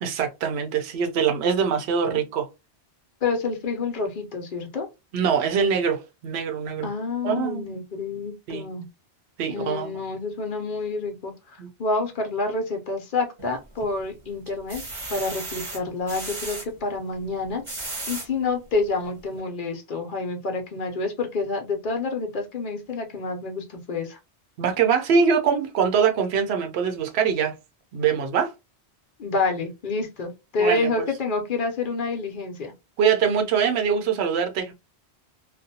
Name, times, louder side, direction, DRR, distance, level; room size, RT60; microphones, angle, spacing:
voice 1, 0.0-2.5 5.1-6.9 7.2-7.8 8.5-8.6 9.4-9.9 11.6-11.7 24.6-27.5 27.9-28.5 30.6-30.9 33.0-34.7, right 6 dB, 75° right, 0.9 m, -23 dB
voice 2, 1.7-2.2 3.2-4.9 6.8-8.8 9.5-14.8 15.1-24.2 29.2-32.7, left 3 dB, 55° left, 0.7 m, -28 dB
sound 1, 13.4-14.0 14.5-16.7 17.4-18.3 18.9-19.0 19.3-19.4, right 2 dB, 30° right, 0.9 m, -35 dB
2.4 x 2.2 x 2.7 m
omnidirectional pair, 1.1 m